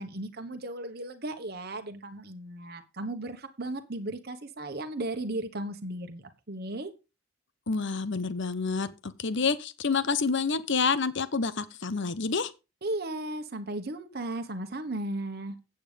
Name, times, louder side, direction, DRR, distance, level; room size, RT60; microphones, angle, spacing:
voice 1, 0.0-6.9 12.8-15.6, right 1 dB, 45° right, 1.2 m, -35 dB
voice 2, 7.7-12.5, left 4 dB, 55° left, 0.9 m, -28 dB
9.0 x 7.9 x 5.1 m
head